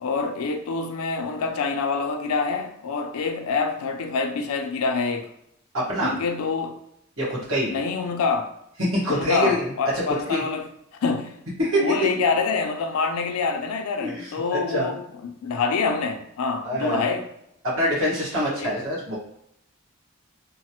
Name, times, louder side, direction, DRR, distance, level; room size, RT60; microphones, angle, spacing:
voice 1, 0.0-5.3 6.0-6.8 7.7-8.5 9.1-10.6 11.0-11.3 11.8-17.3 18.6-18.7, left 4 dB, 80° left, 0.4 m, -26 dB
voice 2, 5.7-6.1 7.2-7.7 8.8-9.7 10.1-10.4 11.6-12.1 14.0-14.9 16.6-17.0 17.6-19.2, equal, 70° right, 1.3 m, -25 dB
3.1 x 2.0 x 2.8 m
head